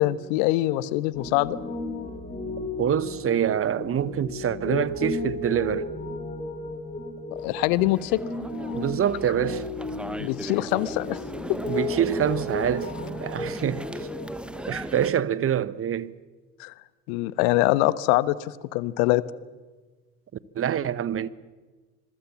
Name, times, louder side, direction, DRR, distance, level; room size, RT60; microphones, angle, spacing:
voice 1, 0.0-1.6 7.4-8.2 10.2-11.2 11.5-11.6 16.6-16.7 17.1-19.2, left 17 dB, 60° left, 1.2 m, -23 dB
Piano, 1.1-14.8, left 2 dB, 15° left, 5.0 m, -34 dB
voice 2, 2.8-5.9 8.7-9.7 11.6-12.9 13.2-13.8 14.7-16.1 20.5-21.3, right 9 dB, 30° right, 1.1 m, -25 dB
sound 1, 7.4-15.1, right 1 dB, ahead, 1.1 m, -38 dB
26.0 x 22.5 x 7.2 m
figure-of-eight pair, 65°, 48 cm